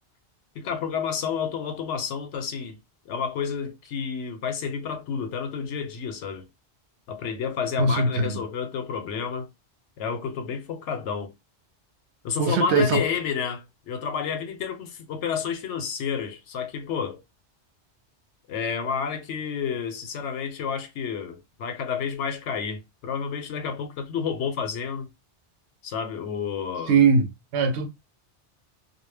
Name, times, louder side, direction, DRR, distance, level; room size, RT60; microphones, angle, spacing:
voice 1, 0.5-2.8 3.1-6.5 7.1-9.5 10.0-11.3 12.2-17.2 18.5-25.1 25.8-27.0, left 6 dB, 80° left, 0.9 m, -30 dB
voice 2, 7.8-8.4 12.4-13.0 26.9-27.9, right 4 dB, 75° right, 0.8 m, -21 dB
2.2 x 2.1 x 3.2 m
omnidirectional pair, 1.2 m